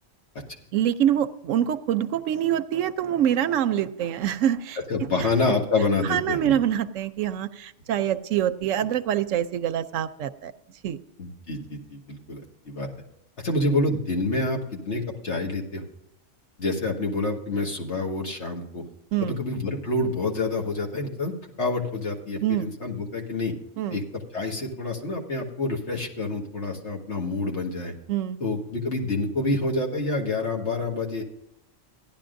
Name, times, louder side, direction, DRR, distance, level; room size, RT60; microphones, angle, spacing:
voice 1, 0.7-4.8 5.2-5.3 6.1-10.5 10.8-11.0 19.1-19.4 22.4-22.7 23.8-24.0 28.1-28.4, right 10 dB, 75° right, 12 dB, 0.9 m, -25 dB
voice 2, 4.9-6.5 11.2-12.9 13.4-15.8 16.6-18.8 19.2-21.3 21.6-23.5 23.9-27.9 28.4-31.2, left 2 dB, 60° left, 1 dB, 2.0 m, -27 dB
16.0 x 11.0 x 2.6 m, 0.82 s
omnidirectional pair, 1.4 m